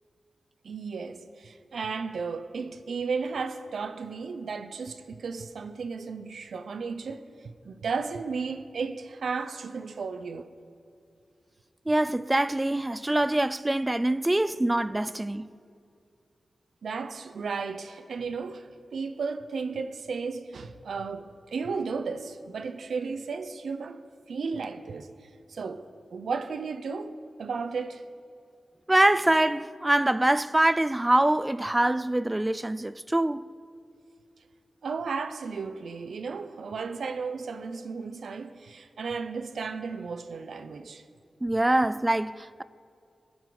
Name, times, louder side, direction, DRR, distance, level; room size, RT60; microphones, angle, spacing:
voice 1, 0.6-10.5 16.8-24.0 24.3-25.1 25.5-27.1 27.4-28.0 34.8-41.0, right 5 dB, 90° right, 0.7 m, -34 dB
voice 2, 11.9-15.5 28.9-33.5 41.4-42.6, right 1 dB, 15° right, 0.3 m, -24 dB
21.5 x 10.5 x 4.1 m
wide cardioid pair, 120°, 0 cm